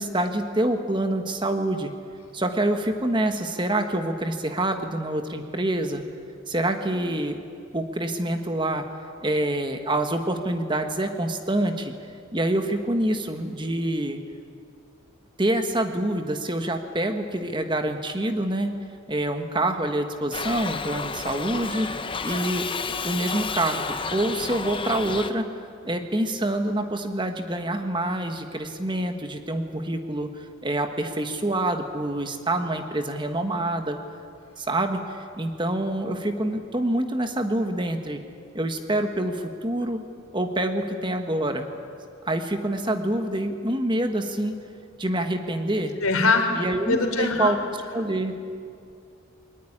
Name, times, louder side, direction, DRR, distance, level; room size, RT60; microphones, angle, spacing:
voice 1, 0.0-1.9 2.3-6.0 6.5-7.4 7.7-8.8 9.2-11.9 12.3-14.2 15.4-18.7 19.1-21.9 22.2-22.7 23.0-25.5 25.8-34.0 34.6-38.2 38.5-40.0 40.3-41.7 42.2-44.6 45.0-45.9 46.5-47.6 47.9-48.3, right 1 dB, 20° right, 6 dB, 1.3 m, -26 dB
Shout / Livestock farm animals working animals, 20.3-25.3, left 4 dB, 25° left, 0.8 m, -31 dB
voice 2, 46.0-46.5 46.9-47.5, left 3 dB, 85° left, 5 dB, 3.5 m, -22 dB
22.0 x 19.0 x 9.9 m, 2.3 s
head